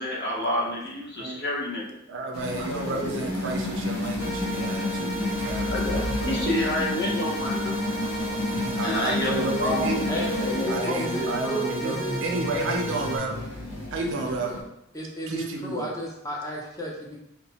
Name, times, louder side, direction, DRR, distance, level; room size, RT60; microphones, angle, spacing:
voice 1, 0.0-1.9 2.5-3.2 5.7-7.8 8.8-11.2, left 1 dB, 55° left, -3 dB, 1.0 m, -29 dB
voice 2, 2.1-5.7 6.2-6.5 8.4-10.1 10.7-13.4 13.9-14.5 15.3-15.9, right 2 dB, 60° right, 3 dB, 0.5 m, -31 dB
sound 1, 2.3-14.6, left 1 dB, 75° left, 0.7 m, -31 dB
sound 2, 4.2-13.2, right 1 dB, ahead, 1.2 m, -35 dB
voice 3, 10.1-12.2 12.5-13.0 14.0-14.6 14.9-17.2, equal, 15° left, -3 dB, 0.7 m, -33 dB
2.8 x 2.2 x 4.0 m, 0.82 s
head